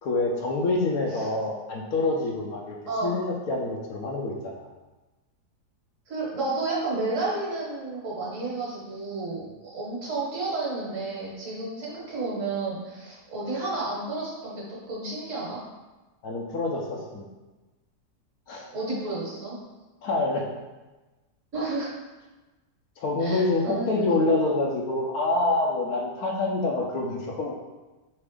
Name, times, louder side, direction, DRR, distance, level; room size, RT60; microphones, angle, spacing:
voice 1, 0.0-2.8 3.0-4.7 16.2-17.3 18.5-18.7 20.0-20.5 23.0-27.5, left 2 dB, 70° left, -1 dB, 1.0 m, -26 dB
voice 2, 6.1-9.4 9.7-15.6 18.7-19.6 21.5-21.9 23.2-24.1, right 3 dB, 50° right, -6 dB, 1.5 m, -31 dB
4.0 x 3.3 x 3.5 m, 1.1 s
omnidirectional pair, 1.8 m